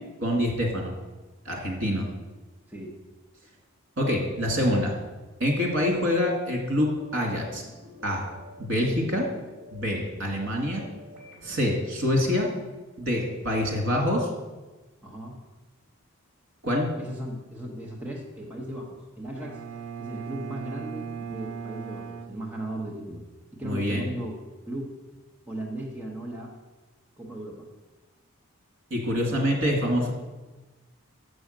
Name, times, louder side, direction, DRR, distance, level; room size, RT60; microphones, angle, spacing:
voice 1, 0.2-1.0 1.5-2.1 4.0-5.0 5.4-7.6 8.0-8.2 8.6-9.3 9.7-10.8 11.4-12.5 13.0-14.3 16.6-16.9 23.6-24.1 28.9-30.1, left 1 dB, 60° right, 0 dB, 2.1 m, -26 dB
sound 1, 6.7-12.1, left 1 dB, 40° right, 3.0 m, -49 dB
voice 2, 15.0-15.4 17.0-19.6 20.0-23.2 23.5-24.3 24.7-25.0 25.5-26.5 27.2-27.7, right 1 dB, 5° right, -3 dB, 0.9 m, -36 dB
Bowed string instrument, 19.4-23.2, right 6 dB, 80° right, 0.6 m, -38 dB
7.0 x 6.2 x 6.5 m, 1.2 s
head